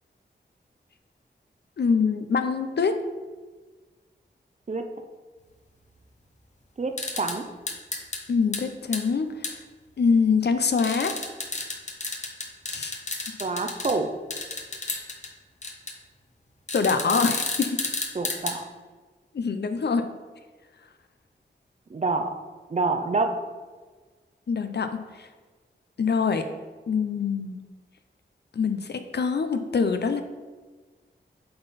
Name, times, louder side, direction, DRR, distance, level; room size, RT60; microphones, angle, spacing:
voice 1, 1.8-3.0 8.3-9.6 10.0-11.1 12.7-12.9 16.7-17.8 19.3-20.1 24.5-24.9 25.2-25.3 26.0-26.4 26.9-27.6 28.5-30.2, left 5 dB, 65° left, 8 dB, 0.6 m, -24 dB
voice 2, 6.8-7.5 13.4-14.1 18.1-18.6 21.9-22.3 22.7-23.3, right 3 dB, 40° right, 6 dB, 0.6 m, -27 dB
sound 1, 7.0-7.4 7.7-8.2 8.5-8.6 8.9-9.0 9.4-9.5 10.8-13.9 14.3-15.3 15.6-15.9 16.7-18.5, left 3 dB, 40° left, 0.9 m, -31 dB
7.7 x 3.9 x 4.1 m, 1.4 s
wide cardioid pair, 85°, 19 cm